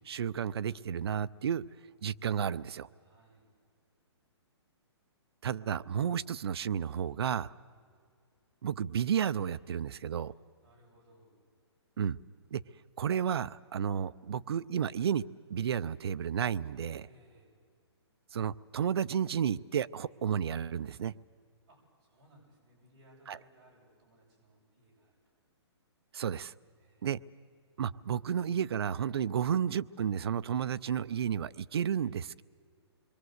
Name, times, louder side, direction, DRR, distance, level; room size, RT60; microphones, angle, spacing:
voice 1, 0.0-1.6 2.0-2.9 5.4-7.5 8.6-10.3 12.0-12.2 12.5-12.6 13.0-15.2 15.5-17.1 18.3-21.1 23.3-23.4 26.1-26.5 27.0-27.2 27.8-32.4, right 8 dB, 60° right, 16 dB, 0.6 m, -32 dB
voice 2, 3.0-3.5 7.4-8.0 10.2-11.4 17.0-17.6 21.7-25.4 26.8-27.1, equal, 45° right, -3 dB, 7.5 m, -63 dB
27.0 x 22.5 x 8.0 m, 2.2 s
hypercardioid pair, 165°, 15 cm